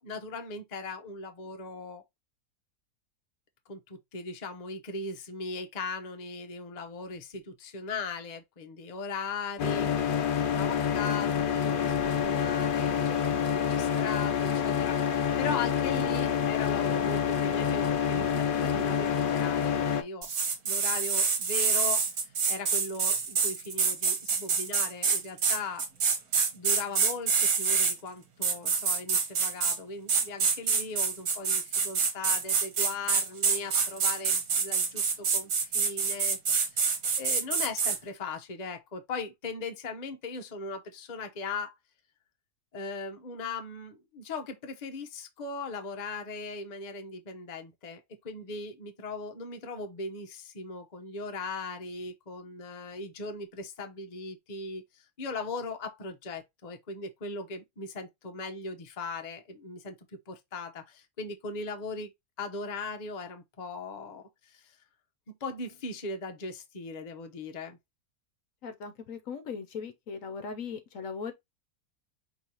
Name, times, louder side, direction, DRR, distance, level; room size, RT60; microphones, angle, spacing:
voice 1, 0.0-2.0 3.7-13.0 13.3-20.3 20.6-25.9 26.5-36.8 37.2-41.7 42.7-59.9 60.3-62.1 62.4-64.8 65.3-67.8, left 3 dB, 35° left, 0.8 m, -38 dB
sound 1, 9.6-20.0, left 8 dB, 90° left, 0.4 m, -27 dB
sound 2, 20.2-27.9 28.4-29.8 30.1-38.0, right 5 dB, 65° right, 1.5 m, -26 dB
voice 2, 68.6-71.3, left 5 dB, 65° left, 1.0 m, -38 dB
5.3 x 3.1 x 2.9 m
omnidirectional pair, 1.6 m